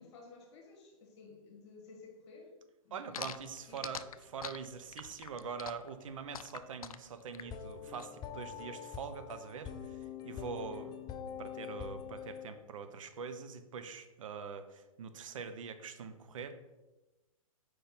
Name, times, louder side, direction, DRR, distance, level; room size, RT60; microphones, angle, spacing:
voice 1, 0.0-2.6 2.8-3.3 3.7-4.2 10.6-10.9, left 4 dB, 50° left, 1 dB, 1.7 m, -55 dB
voice 2, 2.9-10.9 11.4-16.5, right 6 dB, 65° right, 9 dB, 0.7 m, -44 dB
sound 1, 3.1-8.1, left 8 dB, 75° left, 0.4 m, -44 dB
sound 2, 7.4-12.5, left 8 dB, 20° left, 0.6 m, -44 dB
4.8 x 4.5 x 5.7 m, 1.1 s
figure-of-eight pair, 115°, 18 cm